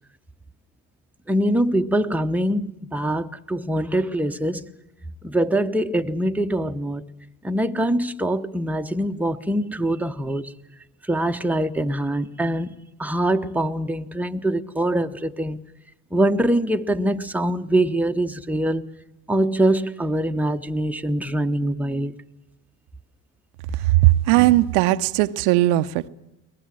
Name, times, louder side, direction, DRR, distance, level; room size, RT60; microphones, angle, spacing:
voice 1, 1.3-4.7 5.2-7.1 7.4-10.5 11.0-15.6 16.1-18.8 19.3-22.1, right 1 dB, 5° right, 1.0 m, -23 dB
voice 2, 23.8-26.1, right 17 dB, 85° right, 0.8 m, -18 dB
22.5 x 19.5 x 7.6 m
supercardioid pair, 70°, 41 cm